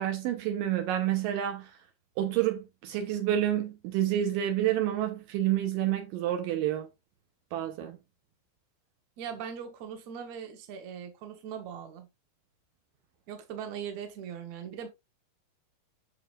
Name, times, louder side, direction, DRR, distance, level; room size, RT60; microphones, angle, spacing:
voice 1, 0.0-1.7 2.2-6.9 7.5-8.0, right 12 dB, 80° right, 2.5 m, -29 dB
voice 2, 9.2-12.1 13.3-14.9, right 8 dB, 60° right, 2.3 m, -40 dB
7.8 x 5.9 x 2.5 m
omnidirectional pair, 4.0 m